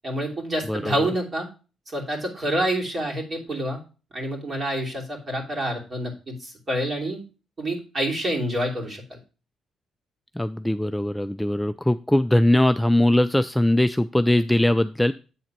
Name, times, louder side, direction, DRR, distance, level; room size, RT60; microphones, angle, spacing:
voice 1, 0.0-1.5 1.9-3.8 4.1-7.2 7.6-9.2, right 1 dB, 35° right, -1 dB, 3.0 m, -27 dB
voice 2, 10.4-15.1, left 1 dB, 5° left, 11 dB, 0.3 m, -21 dB
8.5 x 3.9 x 5.8 m, 0.35 s
cardioid pair, 90°, 0 cm